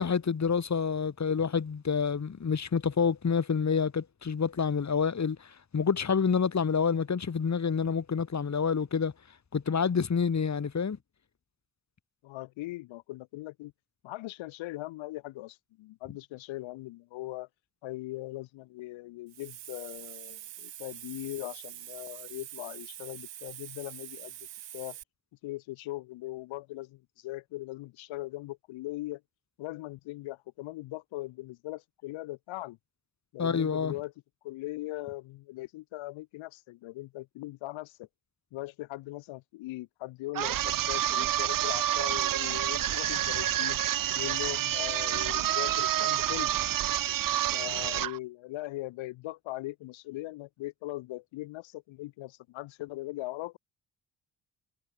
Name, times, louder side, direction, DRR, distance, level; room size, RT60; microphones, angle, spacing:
voice 1, 0.0-9.1 9.5-11.0 33.4-33.9, left 6 dB, 35° left, 2.5 m, -28 dB
voice 2, 12.2-13.7 14.0-17.5 17.8-24.3 24.7-25.0 25.4-29.2 29.6-32.8 33.3-34.1 34.4-38.1 38.5-43.8 44.1-46.5 47.5-53.6, left 18 dB, 75° left, 3.0 m, -40 dB
Hiss, 19.3-25.0, right 12 dB, 65° right, 4.9 m, -45 dB
sound 1, 40.3-48.2, right 12 dB, 45° right, 0.8 m, -28 dB
hypercardioid pair, 45°, 47 cm